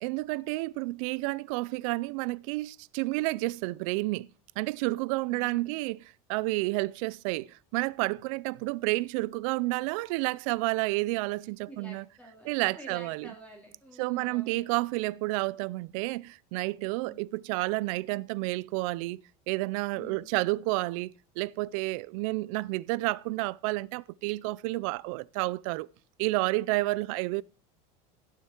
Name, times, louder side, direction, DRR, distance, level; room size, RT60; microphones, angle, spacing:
voice 1, 0.0-4.3 4.6-6.0 6.3-12.1 12.4-13.3 14.0-19.2 19.5-25.9 26.2-27.4, right 22 dB, 60° right, 0.5 m, -30 dB
voice 2, 5.3-5.9 11.7-14.7 17.0-17.2 19.9-20.2 26.7-26.9, equal, 5° left, 3.0 m, -50 dB
16.0 x 6.8 x 4.4 m
supercardioid pair, 160°, 19 cm